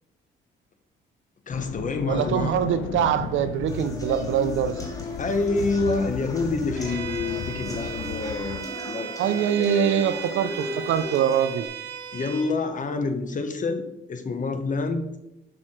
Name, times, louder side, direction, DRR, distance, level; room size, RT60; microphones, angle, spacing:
sound 1, 1.5-8.7, left 10 dB, 80° left, 0.4 m, -36 dB
voice 1, 1.5-2.5 5.2-10.1 12.1-13.8 14.1-15.0, left 3 dB, 40° left, 1.2 m, -27 dB
voice 2, 2.1-4.8 9.2-11.7, right 9 dB, 75° right, 0.6 m, -24 dB
sound 2, 3.7-11.7, left 1 dB, 15° left, 1.8 m, -37 dB
Bowed string instrument, 6.8-12.5, right 8 dB, 55° right, 2.1 m, -37 dB
6.3 x 6.0 x 4.4 m
cardioid pair, 90°, 20 cm